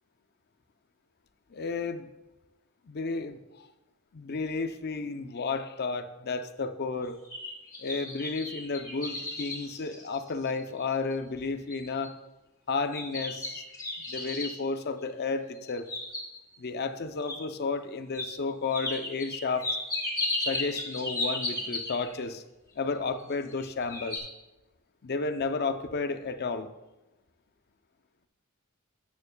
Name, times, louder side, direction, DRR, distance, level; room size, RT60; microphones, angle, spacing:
voice 1, 1.5-2.1 2.9-3.7 4.1-7.2 7.8-12.1 12.7-13.6 14.1-15.9 16.6-19.7 20.5-22.4 22.8-24.2 25.0-26.7, left 4 dB, 50° left, 9 dB, 0.6 m, -32 dB
sound 1, 7.0-10.6 11.1-11.2 11.7-12.1 12.9-14.6 15.6-16.6 17.3-17.4 18.1-18.3 18.7-22.2 23.2-23.6 23.9-24.2, left 2 dB, 15° left, 1.7 m, -34 dB
13.0 x 9.3 x 2.3 m, 1.0 s
head